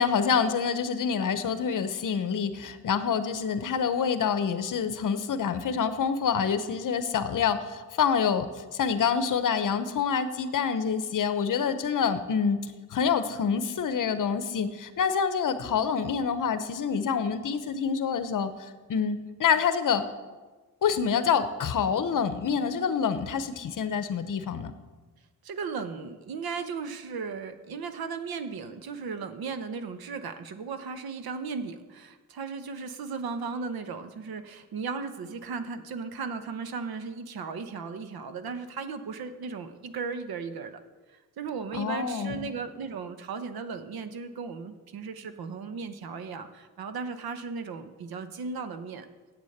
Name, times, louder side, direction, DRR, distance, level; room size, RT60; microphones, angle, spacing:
voice 1, 0.0-8.5 8.7-12.6 12.9-20.0 20.8-24.7 41.7-42.5, left 6 dB, 60° left, 11 dB, 0.9 m, -27 dB
voice 2, 25.4-40.8 41.1-49.1, right 5 dB, 85° right, 9 dB, 1.0 m, -36 dB
8.7 x 8.1 x 7.9 m, 1.3 s
wide cardioid pair, 130°, 36 cm